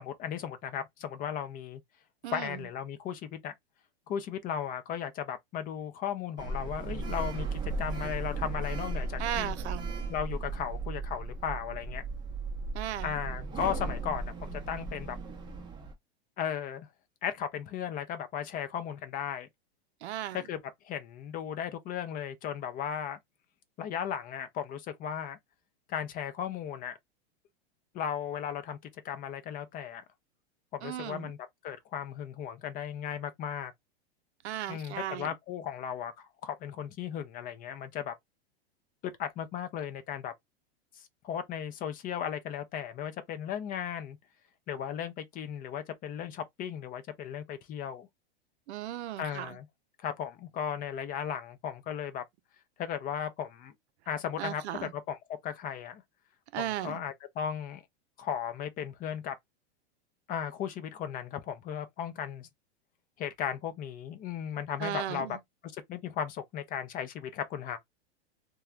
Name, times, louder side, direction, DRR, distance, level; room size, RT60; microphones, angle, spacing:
voice 1, 0.0-1.8 2.3-3.5 4.1-9.5 10.1-12.0 13.0-15.2 16.4-16.9 17.2-19.5 20.3-23.2 23.8-25.4 25.9-27.0 27.9-28.8 29.0-30.0 30.7-31.4 31.6-33.7 34.7-38.1 39.0-40.3 40.9-44.2 44.7-48.1 49.2-49.7 50.0-52.2 52.8-53.7 54.1-55.2 55.4-56.0 56.6-57.8 58.2-59.3 60.3-62.5 63.2-65.4 65.6-67.8, left 9 dB, 25° left, 0.5 m, -36 dB
voice 2, 2.2-2.6 9.2-9.9 12.7-13.2 20.0-20.4 30.8-31.3 34.4-35.3 48.7-49.6 54.4-54.9 56.5-57.0 64.8-65.4, right 12 dB, 80° right, 0.5 m, -36 dB
Sliding door, 6.4-15.9, right 3 dB, 15° right, 0.7 m, -36 dB
3.0 x 2.3 x 2.4 m
hypercardioid pair, 125°, 33 cm